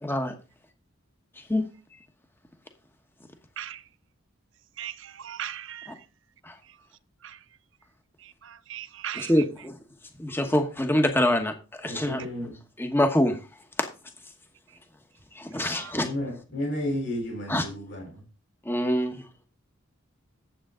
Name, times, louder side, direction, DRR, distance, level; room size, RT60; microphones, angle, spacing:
voice 1, 0.0-0.3 1.4-1.7 5.9-6.0 6.4-6.6 9.1-9.8 10.2-12.2 12.8-13.4 13.8-13.9 15.3-16.1 17.5-17.7 18.6-19.2, left 1 dB, 10° left, 1.1 m, -25 dB
voice 2, 5.2-5.9 8.7-9.3 12.2-12.3, right 10 dB, 65° right, 0.6 m, -36 dB
voice 3, 11.9-12.5 15.5-15.7 16.0-18.2, left 1 dB, 55° left, 3.8 m, -33 dB
10.0 x 7.9 x 3.8 m
head